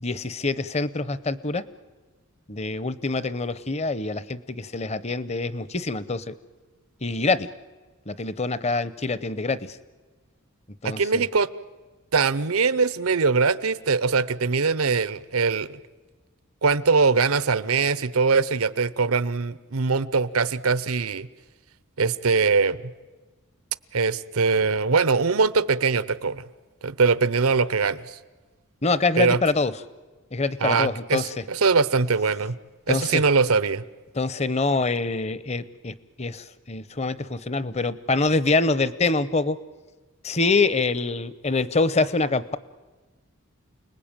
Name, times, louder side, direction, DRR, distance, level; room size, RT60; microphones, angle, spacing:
voice 1, 0.0-1.6 2.5-6.3 7.0-7.5 8.1-9.7 10.8-11.2 28.8-29.7 30.3-31.3 32.9-33.2 34.1-39.6 40.2-42.6, left 3 dB, 30° left, 16 dB, 0.8 m, -25 dB
voice 2, 10.8-11.5 12.1-15.8 16.6-21.3 22.0-22.8 23.9-26.4 26.8-28.2 29.2-29.4 30.6-32.5 32.9-33.8, right 4 dB, 90° right, 17 dB, 0.9 m, -22 dB
29.0 x 20.0 x 8.9 m, 1.3 s
head